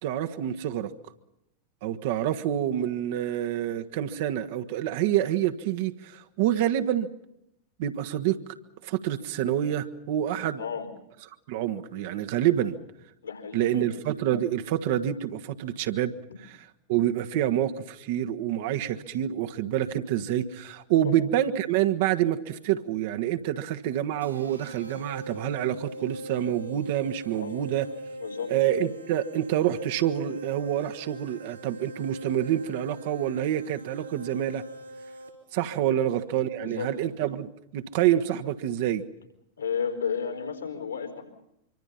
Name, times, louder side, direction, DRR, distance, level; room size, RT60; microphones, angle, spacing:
voice 1, 0.0-0.9 1.8-7.1 7.8-8.4 8.8-10.6 11.5-12.8 13.5-16.1 16.9-27.9 28.5-34.6 35.5-39.0, right 11 dB, 50° right, 7 dB, 1.5 m, -27 dB
voice 2, 10.6-10.9 13.2-13.9 21.0-21.1 27.3-27.7 28.2-28.5 35.8-36.0 36.6-36.9 39.6-41.2, left 7 dB, 75° left, 6 dB, 4.7 m, -33 dB
sound 1, 24.2-35.6, right 1 dB, 85° right, 4.1 m, -42 dB
25.5 x 25.0 x 5.6 m, 0.81 s
figure-of-eight pair, 90°, 0 cm